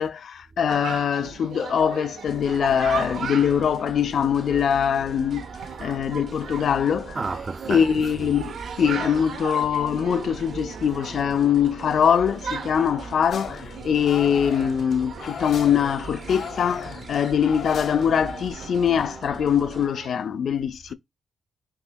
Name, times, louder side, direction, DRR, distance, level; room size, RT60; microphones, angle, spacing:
voice 1, 0.0-5.4 5.8-7.2 7.7-20.9, left 8 dB, 65° left, 0.3 m, -23 dB
Chatter, 0.7-20.3, right 6 dB, 85° right, 0.7 m, -38 dB
sound 1, 2.3-19.9, right 4 dB, 50° right, 0.7 m, -41 dB
voice 2, 7.1-8.4 8.8-8.9 20.9-21.0, right 4 dB, 35° right, 0.3 m, -32 dB
sound 2, 13.3-18.5, left 6 dB, 85° left, 0.9 m, -37 dB
5.5 x 3.0 x 2.2 m
cardioid pair, 85°, 0 cm